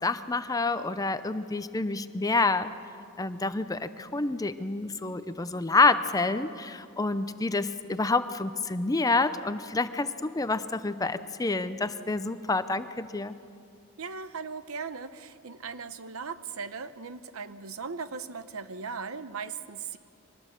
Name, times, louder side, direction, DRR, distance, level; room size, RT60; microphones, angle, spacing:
voice 1, 0.0-2.7 3.2-13.3, left 3 dB, 15° left, 11 dB, 0.5 m, -28 dB
voice 2, 14.0-20.0, right 5 dB, 75° right, 12 dB, 0.8 m, -38 dB
23.5 x 20.0 x 6.8 m, 2.4 s
head